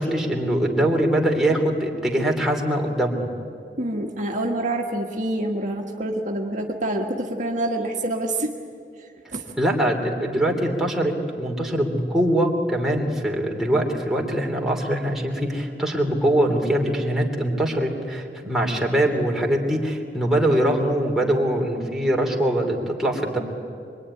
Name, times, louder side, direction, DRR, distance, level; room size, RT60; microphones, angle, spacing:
voice 1, 0.0-3.3 9.6-23.4, right 1 dB, 5° right, -1 dB, 3.2 m, -22 dB
voice 2, 3.8-8.5 9.0-9.6, right 1 dB, 45° right, 1 dB, 1.7 m, -27 dB
25.0 x 23.5 x 9.9 m, 2.4 s
head